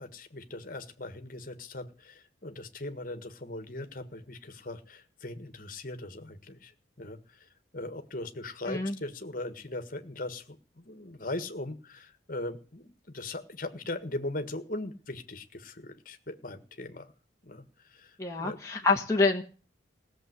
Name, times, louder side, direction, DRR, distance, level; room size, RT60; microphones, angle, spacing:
voice 1, 0.0-6.7 7.0-7.4 7.7-17.1 17.4-18.6, left 2 dB, 45° left, 8 dB, 1.7 m, -39 dB
voice 2, 18.2-19.4, left 3 dB, 15° left, -1 dB, 1.5 m, -26 dB
17.0 x 7.3 x 9.6 m, 0.38 s
head